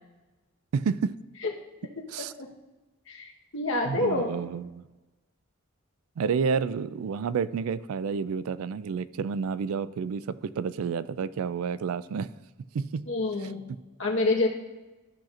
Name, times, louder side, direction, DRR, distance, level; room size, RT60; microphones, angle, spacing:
voice 1, 0.7-1.1 2.1-2.3 3.9-4.8 6.2-12.3 12.7-13.1, right 6 dB, 80° right, 16 dB, 0.4 m, -30 dB
voice 2, 2.2-2.5 3.1-4.3 13.1-14.5, left 2 dB, 60° left, 0 dB, 1.3 m, -28 dB
13.0 x 5.7 x 2.5 m, 1.1 s
head